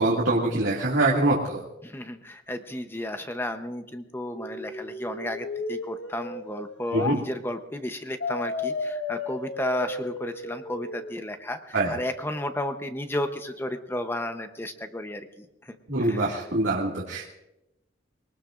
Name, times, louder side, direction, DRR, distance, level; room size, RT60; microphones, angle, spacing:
voice 1, 0.0-1.6 6.9-7.2 11.7-11.9 15.9-17.3, right 2 dB, 85° right, -4 dB, 2.1 m, -24 dB
voice 2, 1.8-16.2, left 1 dB, 10° left, 7 dB, 0.8 m, -33 dB
sound 1, 4.3-7.2 8.2-11.2, left 3 dB, 80° left, 1.3 m, -34 dB
23.0 x 19.0 x 2.5 m, 0.89 s
head